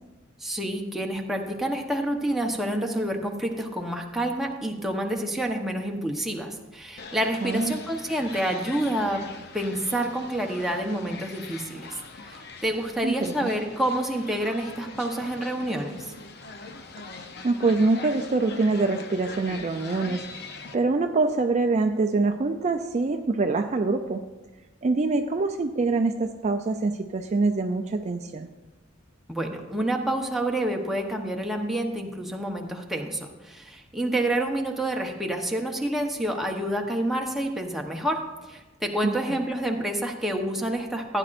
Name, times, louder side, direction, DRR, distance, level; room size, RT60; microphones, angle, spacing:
voice 1, 0.4-9.2 9.5-12.0 12.3-16.1 29.3-38.2 38.5-41.2, right 1 dB, ahead, 1 dB, 0.9 m, -28 dB
sound 1, 7.0-20.8, left 4 dB, 55° left, 0.7 m, -42 dB
voice 2, 7.4-7.8 13.0-13.5 17.4-20.2 20.7-24.2 24.8-28.5 39.0-39.4, right 3 dB, 35° right, 6 dB, 0.4 m, -25 dB
15.5 x 9.8 x 2.5 m, 1.1 s
head